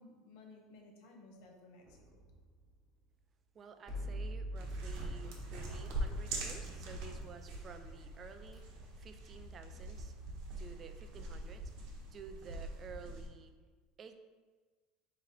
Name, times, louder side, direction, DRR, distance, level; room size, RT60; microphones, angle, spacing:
voice 1, 0.0-2.3, left 2 dB, 70° left, 2 dB, 0.8 m, -57 dB
sound 1, 1.8-3.1 3.9-7.2 8.3-8.6, equal, 5° right, 1.3 m, -45 dB
voice 2, 3.5-10.1 10.6-13.5 14.0-14.2, right 5 dB, 30° right, 7 dB, 0.4 m, -53 dB
sound 2, 4.5-13.3, right 1 dB, 65° right, 0.9 m, -43 dB
3.9 x 3.2 x 4.1 m, 1.4 s
supercardioid pair, 140°, 0 cm